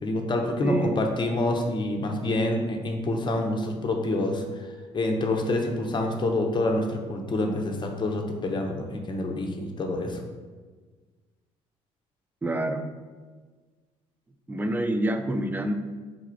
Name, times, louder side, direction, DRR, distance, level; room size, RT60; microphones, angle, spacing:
voice 1, 0.0-4.7 4.9-10.2, left 2 dB, 30° left, 3 dB, 0.7 m, -27 dB
voice 2, 0.6-0.9 12.4-12.8 14.5-15.7, right 1 dB, 15° right, 6 dB, 0.4 m, -27 dB
3.9 x 2.4 x 4.5 m, 1.4 s
hypercardioid pair, 60°, 14 cm